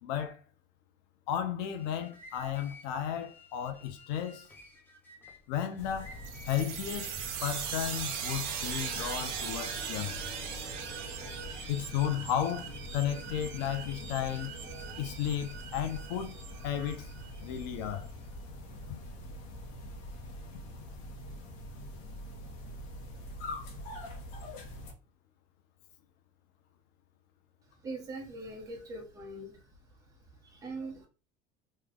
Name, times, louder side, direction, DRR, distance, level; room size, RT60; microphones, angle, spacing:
voice 1, 0.0-0.4 1.3-4.5 5.5-6.2 6.4-7.1 7.4-10.1 11.7-14.5 15.0-16.3 16.6-17.1 17.4-18.1, left 10 dB, 90° left, 0.6 m, -34 dB
sound 1, 1.6-9.2, left 1 dB, 10° left, 0.6 m, -54 dB
sound 2, 5.8-24.9, left 1 dB, 65° left, 0.9 m, -44 dB
sound 3, 6.2-17.7, right 8 dB, 65° right, 0.9 m, -40 dB
voice 2, 27.8-29.6 30.4-31.1, right 2 dB, 15° right, 1.1 m, -41 dB
3.2 x 2.2 x 3.6 m
cardioid pair, 170°, 21 cm